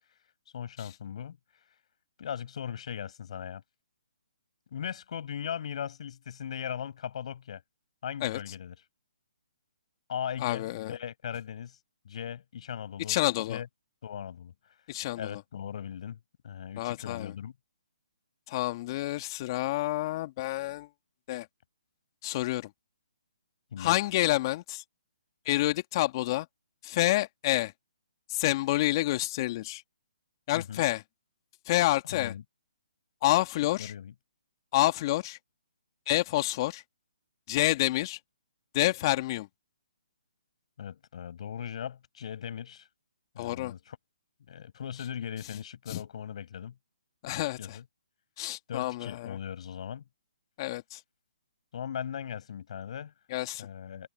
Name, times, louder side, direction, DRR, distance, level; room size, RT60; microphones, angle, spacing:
voice 1, 0.5-1.4 2.2-3.6 4.7-7.6 8.0-8.7 10.1-11.8 12.0-13.2 13.5-13.7 14.0-14.5 15.2-16.2 16.4-17.5 23.7-24.0 30.5-30.8 32.1-32.4 33.5-34.1 40.8-42.9 43.3-44.0 44.5-46.7 47.6-47.8 48.7-50.0 51.7-53.1 53.6-54.1, left 8 dB, 55° left, 6.5 m, -38 dB
voice 2, 10.4-10.9 13.1-13.6 14.9-15.4 16.8-17.3 18.5-20.9 21.3-21.5 22.2-22.7 23.8-24.8 25.5-26.5 26.8-27.7 28.3-29.8 30.5-31.0 31.7-32.3 33.2-33.9 34.7-35.4 36.1-36.8 37.5-38.2 38.7-39.5 43.4-43.7 45.9-46.0 47.2-47.8 48.4-49.4 50.6-51.0 53.3-53.7, left 17 dB, 35° left, 2.3 m, -28 dB
hypercardioid pair, 145°, 4 cm